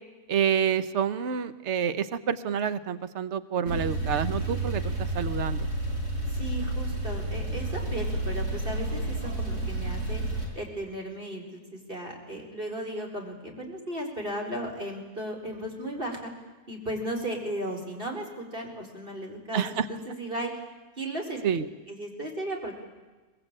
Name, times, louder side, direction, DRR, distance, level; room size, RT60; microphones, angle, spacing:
voice 1, 0.3-5.7 19.5-19.9 21.4-21.7, right 8 dB, 50° right, 13 dB, 1.2 m, -28 dB
Male speech man speaking / Car / Idling, 3.7-10.4, right 1 dB, 85° right, 5.7 m, -30 dB
voice 2, 6.3-10.2 10.5-16.3 16.7-20.5 21.0-21.4 21.9-22.8, right 1 dB, 35° right, 2 dB, 4.8 m, -35 dB
24.0 x 20.5 x 8.9 m, 1.2 s
omnidirectional pair, 1.6 m